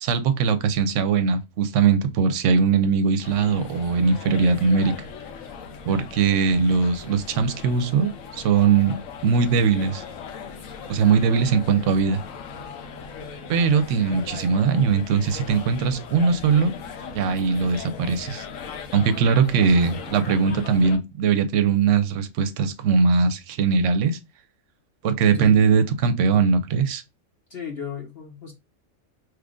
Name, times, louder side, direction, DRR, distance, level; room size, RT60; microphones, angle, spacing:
voice 1, 0.0-4.9 5.9-9.0 9.2-10.0 10.9-12.2 13.5-16.7 17.1-18.5 18.9-24.2 25.0-27.0, right 5 dB, 75° right, 0.9 m, -20 dB
sound 1, 3.2-21.0, left 6 dB, 80° left, 1.1 m, -39 dB
voice 2, 25.3-25.7 27.5-28.5, left 7 dB, 55° left, 0.9 m, -35 dB
3.1 x 2.5 x 3.6 m
omnidirectional pair, 1.4 m